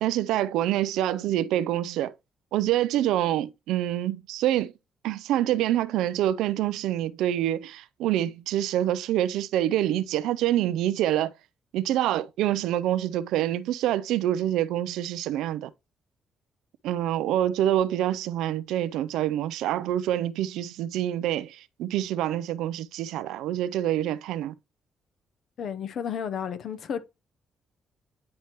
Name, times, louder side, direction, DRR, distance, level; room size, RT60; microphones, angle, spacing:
voice 1, 0.0-2.1 2.5-4.7 5.0-11.3 11.7-15.7 16.8-24.5, right 12 dB, 90° right, 0.4 m, -26 dB
voice 2, 25.6-27.0, left 8 dB, 65° left, 0.7 m, -32 dB
9.5 x 4.4 x 3.0 m
cardioid pair, 90°, 0 cm